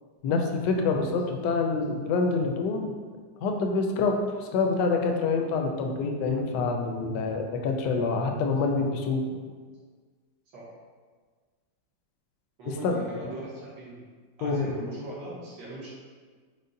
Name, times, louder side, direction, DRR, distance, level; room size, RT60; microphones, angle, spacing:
voice 1, 0.2-2.9 3.4-9.2 12.8-13.0 14.4-14.7, left 4 dB, 75° left, 3 dB, 1.1 m, -26 dB
sound 1, 5.2-9.4, right 3 dB, 15° right, 0.5 m, -48 dB
voice 2, 12.6-14.1 14.4-15.9, right 2 dB, 70° right, -6 dB, 1.8 m, -39 dB
5.2 x 2.1 x 3.8 m, 1.5 s
omnidirectional pair, 2.1 m